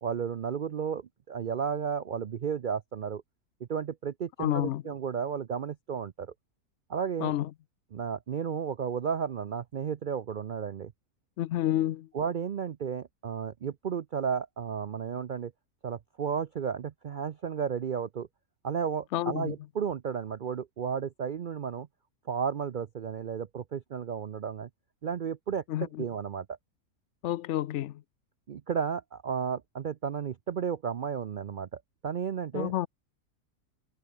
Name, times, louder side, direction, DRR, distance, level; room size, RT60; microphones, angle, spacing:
voice 1, 0.0-3.2 3.7-6.3 6.9-7.3 7.9-10.9 12.1-15.5 15.8-18.3 18.6-21.9 22.3-24.7 25.0-26.5 28.5-32.7, right 7 dB, 85° right, 0.4 m, -33 dB
voice 2, 4.4-4.8 7.2-7.5 11.4-12.1 19.1-19.5 25.7-26.0 27.2-28.0 32.5-32.9, left 13 dB, 65° left, 0.7 m, -29 dB
omnidirectional pair, 1.6 m